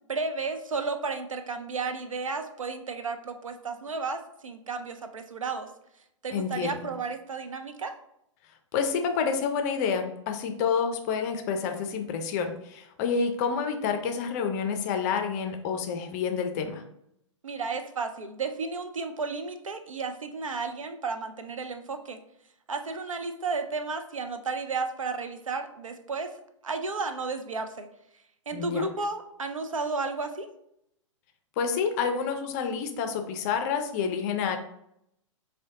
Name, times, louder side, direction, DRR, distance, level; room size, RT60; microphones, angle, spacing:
voice 1, 0.1-5.7 6.2-8.0 17.4-22.2 22.7-26.3 26.6-27.9 28.5-30.5, right 4 dB, 80° right, 7 dB, 0.5 m, -33 dB
voice 2, 6.3-6.9 8.7-16.8 28.5-28.9 31.6-34.6, left 6 dB, 30° left, 6 dB, 0.5 m, -28 dB
6.1 x 2.2 x 2.7 m, 0.77 s
figure-of-eight pair, 115°, 17 cm